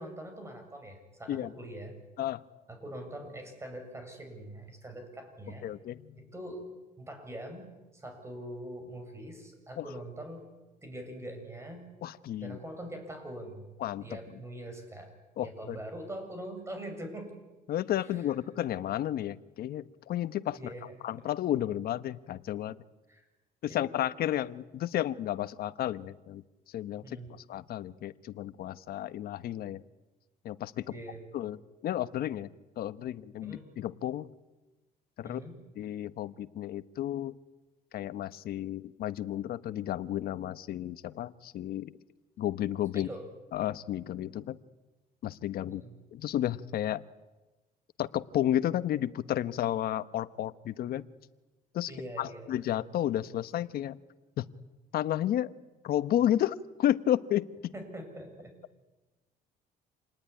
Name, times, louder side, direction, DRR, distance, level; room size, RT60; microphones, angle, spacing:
voice 1, 0.0-2.0 2.7-5.7 6.2-6.7 7.0-7.7 7.9-10.4 10.8-11.9 12.4-13.6 14.0-15.1 15.4-17.3 20.5-20.9 23.1-23.3 23.7-24.0 27.0-27.3 30.9-31.2 33.4-33.7 35.2-35.6 42.9-43.3 45.7-46.0 51.8-52.5 57.7-58.5, right 1 dB, 15° right, 6 dB, 7.7 m, -43 dB
voice 2, 5.6-6.3 9.8-9.9 12.0-12.6 13.8-14.2 15.4-15.8 17.7-20.7 21.0-22.8 23.6-29.8 30.4-30.9 31.3-31.6 31.8-34.3 35.2-35.4 35.8-37.4 37.9-41.9 42.4-43.1 43.5-44.6 45.2-45.8 46.1-47.0 48.0-51.0 51.7-51.9 52.2-54.0 54.4-54.5 54.9-55.5 55.8-57.5, left 12 dB, 65° left, 13 dB, 1.1 m, -32 dB
28.0 x 19.5 x 10.0 m, 1.1 s
cardioid pair, 110°, 17 cm